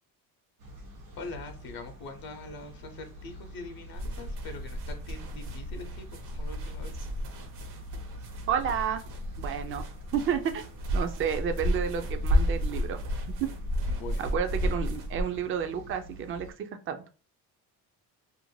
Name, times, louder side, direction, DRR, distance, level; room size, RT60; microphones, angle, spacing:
sound 1, 0.6-16.5, equal, 85° right, 1.1 m, -46 dB
voice 1, 1.2-6.9 13.8-14.3, left 3 dB, 55° left, 6 dB, 0.7 m, -43 dB
sound 2, 3.9-15.2, equal, 65° right, 0.8 m, -32 dB
voice 2, 8.5-9.0 9.4-9.9 10.1-10.6 10.9-13.0 14.2-17.0, right 8 dB, 30° right, 8 dB, 0.4 m, -31 dB
2.6 x 2.1 x 3.1 m, 0.37 s
supercardioid pair, 65°, 43 cm